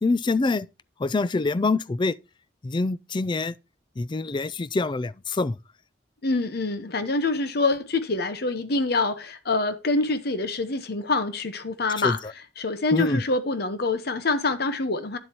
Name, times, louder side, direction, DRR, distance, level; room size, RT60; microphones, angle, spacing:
voice 1, 0.0-0.7 1.0-2.1 2.6-3.5 4.0-5.6 12.0-12.2 12.9-13.2, left 3 dB, 25° left, 0.4 m, -25 dB
voice 2, 6.2-12.2 12.6-15.2, left 3 dB, 60° left, 1.0 m, -25 dB
10.0 x 7.9 x 2.8 m
head